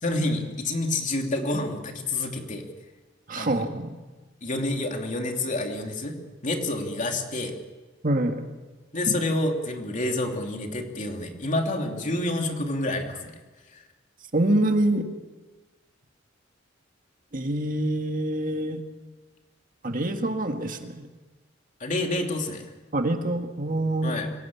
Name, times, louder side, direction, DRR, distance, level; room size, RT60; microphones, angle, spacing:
voice 1, 0.0-2.6 3.4-3.6 4.4-6.2 6.4-7.5 8.9-13.2 13.7-13.8 21.8-22.6 24.0-24.3, left 2 dB, 40° left, 3 dB, 2.9 m, -28 dB
voice 2, 3.3-3.9 8.0-8.4 9.1-9.2 14.3-15.1 17.3-18.8 19.8-21.1 22.9-24.2, right 1 dB, 45° right, 5 dB, 1.8 m, -25 dB
24.5 x 17.0 x 8.6 m, 1.2 s
head